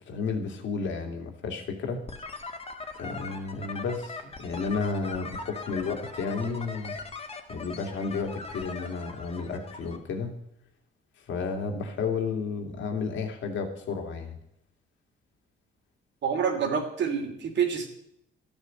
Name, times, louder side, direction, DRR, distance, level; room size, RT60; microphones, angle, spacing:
voice 1, 0.0-2.0 3.0-7.0 7.5-10.3 11.3-14.4, left 4 dB, 75° left, 3 dB, 2.6 m, -32 dB
sound 1, 2.1-10.0, left 3 dB, 30° left, 2.0 m, -40 dB
voice 2, 16.2-17.9, right 7 dB, 65° right, 5 dB, 2.9 m, -27 dB
12.5 x 9.9 x 7.9 m, 0.75 s
cardioid pair, 90°, 20 cm